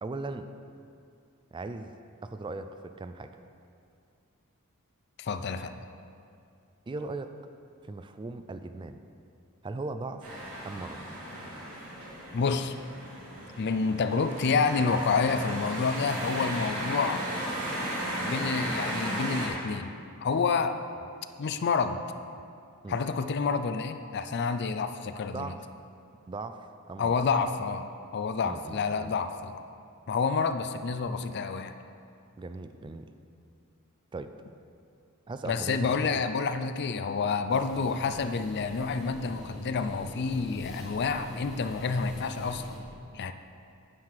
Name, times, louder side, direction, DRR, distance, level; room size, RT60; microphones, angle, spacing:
voice 1, 0.0-0.5 1.5-1.9 2.2-3.3 6.9-7.3 7.8-9.0 9.6-10.3 10.6-11.0 22.8-23.0 25.3-25.6 26.3-27.2 28.4-29.1 32.4-33.1 34.1-34.3 35.3-36.2 37.8-37.9, right 3 dB, 20° right, 9 dB, 0.3 m, -38 dB
voice 2, 5.2-5.7 12.3-12.7 13.6-17.2 18.2-20.8 21.4-22.0 22.9-25.5 27.0-29.5 30.1-31.8 35.4-42.6 43.1-43.3, left 5 dB, 50° left, 10 dB, 0.4 m, -29 dB
sound 1, 10.2-19.5, right 1 dB, 90° right, 2.5 m, -35 dB
sound 2, 37.5-42.8, equal, ahead, 1.5 m, -44 dB
9.4 x 4.9 x 7.5 m, 2.4 s
head